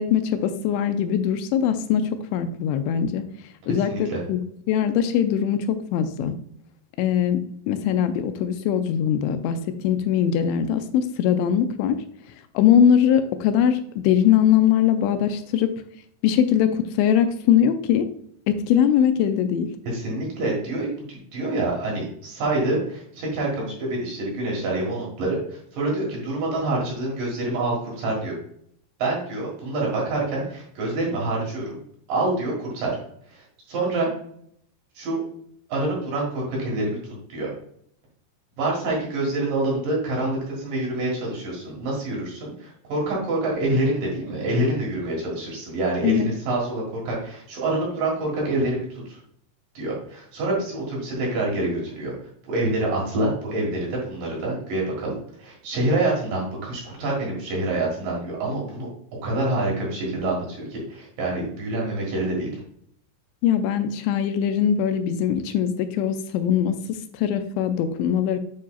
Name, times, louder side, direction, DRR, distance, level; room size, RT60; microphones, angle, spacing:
voice 1, 0.0-3.2 3.7-4.4 4.7-6.3 7.0-7.4 7.7-12.0 12.6-15.7 16.2-18.1 18.5-19.7 46.0-46.3 63.4-68.4, left 9 dB, 90° left, 9 dB, 2.9 m, -21 dB
voice 2, 3.9-4.2 19.9-28.4 29.0-31.8 32.1-32.9 33.3-34.1 35.0-35.2 35.7-37.5 38.6-49.2 49.7-52.1 52.4-58.9 59.2-62.5, right 2 dB, 60° right, -3 dB, 2.9 m, -26 dB
8.6 x 4.6 x 2.4 m, 0.67 s
omnidirectional pair, 5.1 m